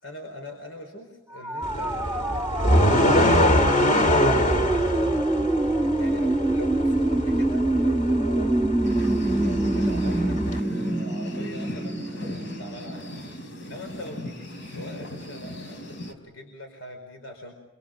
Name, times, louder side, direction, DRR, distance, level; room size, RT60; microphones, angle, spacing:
voice 1, 0.0-5.2 6.0-13.1 13.4-17.5, left 1 dB, 85° left, 4 dB, 4.7 m, -42 dB
sound 1, 1.4-13.2, right 1 dB, 5° right, 1.5 m, -26 dB
sound 2, 1.6-10.6, equal, 40° left, 2.4 m, -24 dB
sound 3, 8.8-16.1, left 1 dB, 70° left, 4.5 m, -38 dB
27.5 x 25.0 x 7.6 m, 0.94 s
head